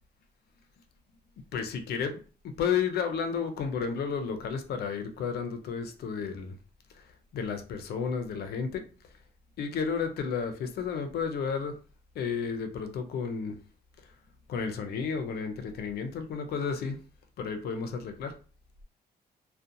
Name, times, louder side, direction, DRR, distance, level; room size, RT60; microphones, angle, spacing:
voice 1, 1.5-6.6 6.9-8.9 9.6-11.8 12.2-13.6 14.5-17.0 17.4-18.3, left 6 dB, 65° left, 0.5 m, -32 dB
2.5 x 2.1 x 2.6 m
cardioid pair, 175°, 17 cm